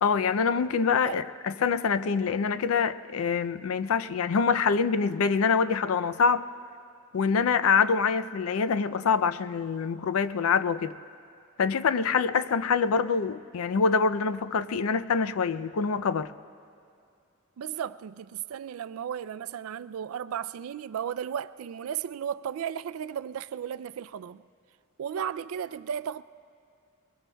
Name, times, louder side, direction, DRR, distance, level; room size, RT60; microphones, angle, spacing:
voice 1, 0.0-6.4 7.1-10.9 11.6-16.3, left 5 dB, 85° left, 0.4 m, -25 dB
voice 2, 17.6-24.4 25.0-26.2, right 8 dB, 80° right, 0.3 m, -34 dB
23.5 x 22.0 x 2.2 m
head